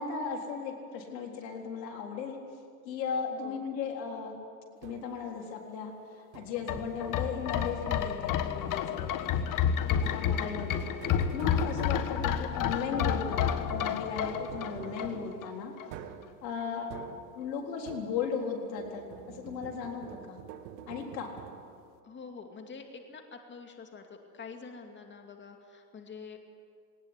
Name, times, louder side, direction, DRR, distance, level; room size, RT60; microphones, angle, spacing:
voice 1, 0.0-2.4 2.8-4.3 4.8-9.5 9.9-15.8 16.4-16.9 17.3-20.4 20.9-21.3, left 5 dB, 90° left, 2 dB, 4.0 m, -36 dB
sound 1, 4.8-5.3 6.3-6.8 7.7-8.2 10.0-18.5 18.8-21.9, right 9 dB, 65° right, 1.9 m, -47 dB
sound 2, 6.6-15.5 15.8-15.9, left 8 dB, 40° left, 1.4 m, -30 dB
voice 2, 9.8-10.3 16.6-16.8 22.0-26.4, left 5 dB, 20° left, 4 dB, 2.5 m, -47 dB
19.5 x 19.0 x 9.7 m, 2.2 s
supercardioid pair, 115°, 49 cm